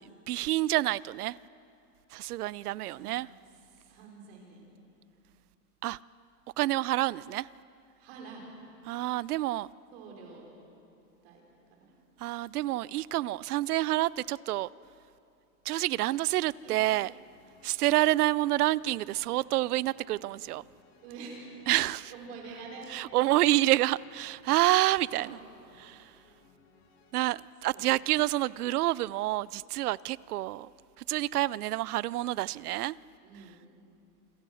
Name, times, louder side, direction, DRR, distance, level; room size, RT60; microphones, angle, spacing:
voice 1, 0.3-1.4 2.1-3.3 5.8-6.0 6.6-7.5 8.9-9.7 12.2-14.7 15.7-17.1 17.6-20.6 21.7-22.1 22.9-25.4 25.8-26.1 27.1-30.7 31.0-33.0, right 16 dB, 70° right, 0.6 m, -28 dB
voice 2, 2.9-3.2 3.7-4.7 8.0-8.4 9.9-10.5 11.2-11.4 11.7-11.9 16.6-16.8 21.0-21.4 22.1-22.9 25.1-25.3 27.7-27.9 33.2-33.7, right 4 dB, 40° right, 5.4 m, -46 dB
sound 1, 17.1-27.2, left 4 dB, 40° left, 2.8 m, -63 dB
28.0 x 23.0 x 6.4 m
supercardioid pair, 175°, 47 cm